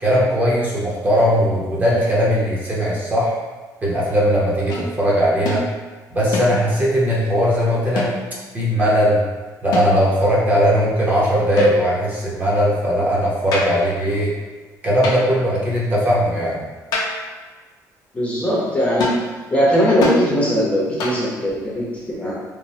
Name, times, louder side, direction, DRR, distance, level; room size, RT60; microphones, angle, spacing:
voice 1, 0.0-3.4 3.8-5.6 6.1-8.1 8.5-9.2 9.6-14.3 14.8-16.6, equal, 25° right, -6 dB, 0.7 m, -18 dB
sound 1, 4.7-4.9 5.4-5.7 6.3-6.8 8.0-8.4 9.7-10.2 11.6-12.1 13.5-13.9 15.0-15.4 16.9-17.4 19.0-19.3 20.0-20.3 21.0-21.4, left 2 dB, 75° left, 0.6 m, -25 dB
voice 2, 18.1-19.2 19.5-22.3, equal, 15° left, -6 dB, 0.6 m, -19 dB
3.1 x 2.0 x 2.7 m, 1.3 s
cardioid pair, 145°, 7 cm